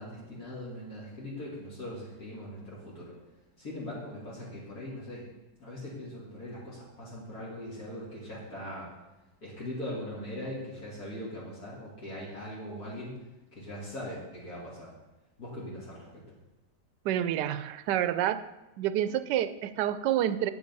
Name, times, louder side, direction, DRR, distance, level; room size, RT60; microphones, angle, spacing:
voice 1, 0.0-3.1 3.6-5.2 5.6-8.9 9.4-13.2 13.5-14.9 15.4-16.1, left 1 dB, 60° left, -7 dB, 3.2 m, -40 dB
voice 2, 17.0-18.4 18.8-20.5, right 11 dB, 85° right, 13 dB, 1.2 m, -28 dB
9.6 x 8.6 x 5.4 m, 1.0 s
omnidirectional pair, 1.8 m